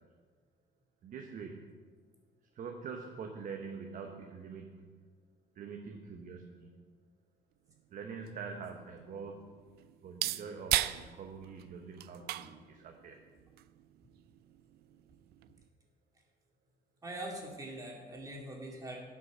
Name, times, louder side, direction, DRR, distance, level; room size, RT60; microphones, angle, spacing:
voice 1, 1.0-1.7 2.5-4.9 5.5-6.8 7.9-9.6 10.0-13.2, right 5 dB, 50° right, 3 dB, 1.0 m, -45 dB
sound 1, 7.7-15.7, right 14 dB, 70° right, 0.4 m, -40 dB
voice 2, 17.0-19.0, right 1 dB, 20° right, -1 dB, 2.4 m, -42 dB
10.0 x 6.1 x 6.2 m, 1.5 s
cardioid pair, 110°, 17 cm